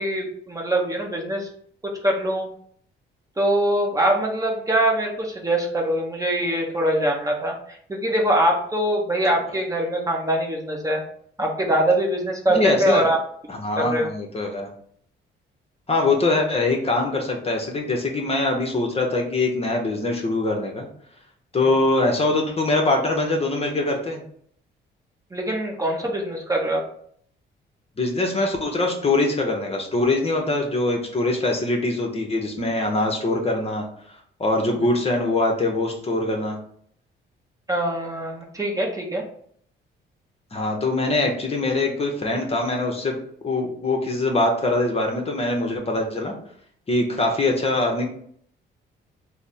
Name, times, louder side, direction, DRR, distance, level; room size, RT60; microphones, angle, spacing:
voice 1, 0.0-1.5 1.8-2.5 3.4-11.0 11.4-13.2 13.8-14.1 25.3-26.8 37.7-39.2, right 1 dB, 15° right, 0 dB, 0.8 m, -23 dB
voice 2, 12.5-13.1 13.5-14.7 15.9-20.9 21.5-24.2 28.0-33.9 34.4-36.6 40.5-43.2 43.4-46.3 46.9-48.1, left 2 dB, 30° left, 1 dB, 0.7 m, -23 dB
3.3 x 2.0 x 4.1 m, 0.63 s
cardioid pair, 90°, 20 cm